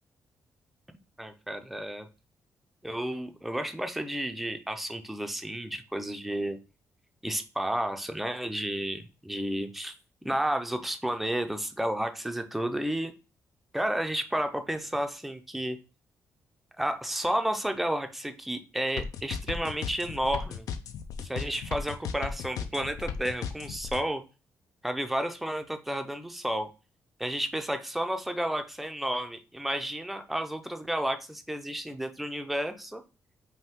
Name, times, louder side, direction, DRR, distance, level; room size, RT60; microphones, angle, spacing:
voice 1, 1.2-2.1 2.8-6.6 7.2-9.9 10.2-13.1 13.7-15.8 16.8-20.7 21.2-24.2 24.8-26.7 27.2-33.0, right 1 dB, ahead, 6 dB, 0.4 m, -31 dB
sound 1, 19.0-24.0, left 7 dB, 80° left, 0.5 m, -35 dB
5.5 x 2.6 x 3.5 m, 0.32 s
cardioid pair, 160°, 6 cm